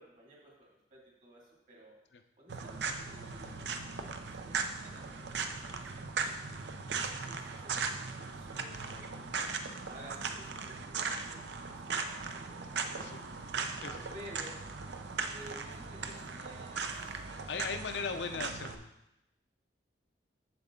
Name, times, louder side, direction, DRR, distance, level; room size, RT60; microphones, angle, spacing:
voice 1, 0.0-2.0 2.4-6.6 7.0-9.2 9.9-13.2 14.1-14.6 15.3-17.2 17.9-18.3, right 1 dB, 45° right, -3 dB, 2.3 m, -54 dB
sound 1, 2.5-18.8, right 5 dB, 70° right, 0.6 m, -38 dB
voice 2, 13.8-14.1 17.5-18.9, left 5 dB, 75° left, 7 dB, 0.6 m, -38 dB
7.9 x 7.1 x 3.7 m, 0.86 s
head